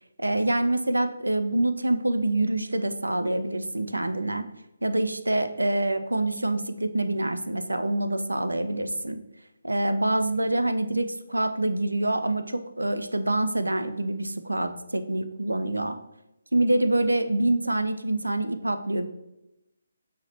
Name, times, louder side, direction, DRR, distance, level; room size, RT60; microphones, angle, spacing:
voice 1, 0.2-4.5 4.8-9.2 9.6-16.0 16.5-19.0, right 1 dB, 85° right, 8 dB, 0.4 m, -26 dB
5.5 x 2.8 x 2.9 m, 0.91 s
figure-of-eight pair, 145°, 0 cm